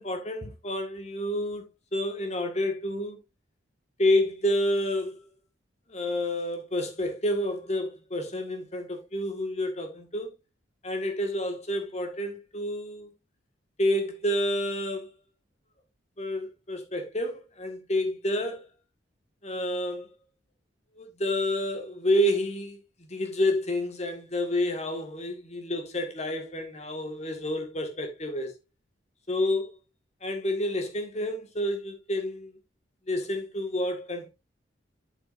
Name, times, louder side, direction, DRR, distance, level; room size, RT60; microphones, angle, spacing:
voice 1, 0.0-1.7 1.9-3.2 4.0-5.2 5.9-10.3 10.8-13.1 13.8-15.1 16.2-18.7 19.4-20.1 21.0-28.5 29.3-29.7 30.2-32.5 33.1-34.3, left 1 dB, 35° left, 1.8 m, -29 dB
8.3 x 7.5 x 2.6 m
head